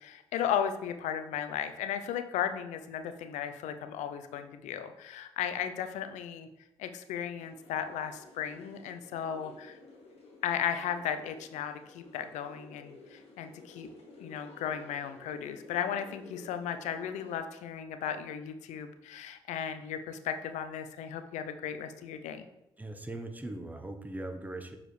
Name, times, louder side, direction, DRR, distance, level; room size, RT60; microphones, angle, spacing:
voice 1, 0.0-6.5 6.8-9.8 10.4-13.9 14.2-22.4, left 9 dB, 75° left, 9 dB, 0.6 m, -35 dB
sound 1, 7.4-17.4, left 2 dB, 55° left, 1.9 m, -53 dB
voice 2, 22.8-24.8, right 2 dB, 15° right, 6 dB, 0.9 m, -40 dB
6.6 x 4.9 x 3.3 m, 0.91 s
hypercardioid pair, 55°, 12 cm